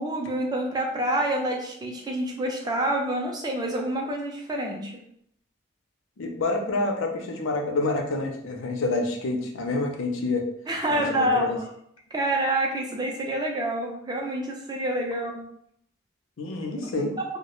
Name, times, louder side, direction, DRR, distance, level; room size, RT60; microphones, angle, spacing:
voice 1, 0.0-4.9 10.7-11.5 12.1-15.4 16.8-17.1, right 1 dB, 20° right, 1 dB, 0.3 m, -27 dB
voice 2, 6.2-10.5 10.9-11.6 16.4-17.1, left 2 dB, 80° left, 3 dB, 0.5 m, -28 dB
2.2 x 2.1 x 2.9 m, 0.72 s
head